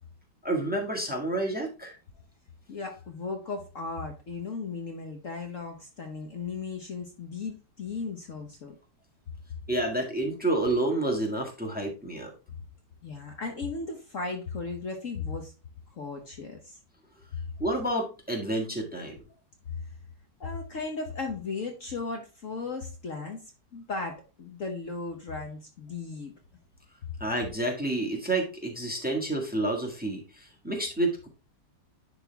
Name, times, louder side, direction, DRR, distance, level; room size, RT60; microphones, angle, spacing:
voice 1, 0.4-1.9 9.7-12.3 17.6-19.1 27.2-31.3, right 1 dB, 5° right, 1 dB, 1.5 m, -29 dB
voice 2, 2.7-8.7 13.0-15.5 15.9-16.8 20.4-23.4 23.7-26.3, left 4 dB, 50° left, 3 dB, 1.2 m, -36 dB
10.5 x 3.8 x 3.4 m, 0.31 s
omnidirectional pair, 1.9 m